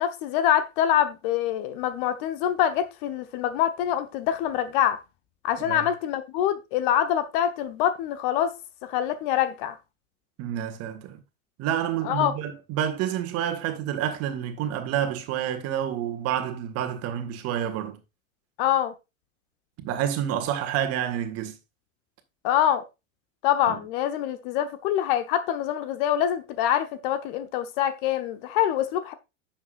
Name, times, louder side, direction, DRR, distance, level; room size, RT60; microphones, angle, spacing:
voice 1, 0.0-5.0 5.4-8.5 8.8-9.7 12.0-12.4 18.6-18.9 22.4-22.8 23.4-29.1, left 11 dB, 40° left, 1.0 m, -25 dB
voice 2, 10.4-11.2 11.6-18.0 19.8-21.5 23.7-23.8, right 10 dB, 35° right, 1.7 m, -29 dB
11.0 x 7.5 x 2.5 m
figure-of-eight pair, 85°, 40 cm